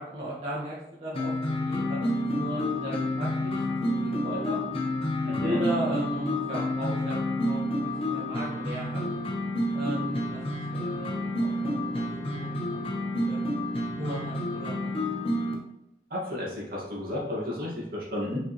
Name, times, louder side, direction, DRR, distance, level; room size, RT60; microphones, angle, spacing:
voice 1, 0.0-1.3 1.7-4.6 5.4-9.1 9.7-10.4 10.7-12.8 13.2-13.5 14.0-14.9, right 1 dB, 40° right, -8 dB, 1.7 m, -36 dB
sound 1, 1.1-15.5, left 1 dB, 35° left, 1.0 m, -29 dB
voice 2, 5.2-5.6 16.1-18.4, left 1 dB, 55° right, -4 dB, 2.1 m, -32 dB
5.9 x 5.2 x 3.2 m, 0.81 s
head